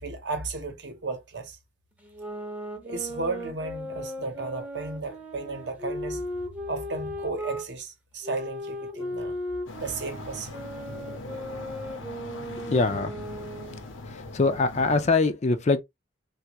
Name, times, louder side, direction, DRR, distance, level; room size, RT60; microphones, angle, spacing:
voice 1, 0.0-1.6 2.8-6.2 6.7-9.4 9.8-10.6, right 3 dB, 60° right, 0.8 m, -34 dB
sound 1, 2.0-7.7 8.2-13.8, left 1 dB, 10° right, 0.6 m, -36 dB
sound 2, 9.7-15.1, left 2 dB, 90° left, 0.8 m, -41 dB
voice 2, 12.7-13.1 14.3-15.8, left 3 dB, 35° left, 0.4 m, -22 dB
3.4 x 2.3 x 2.9 m
head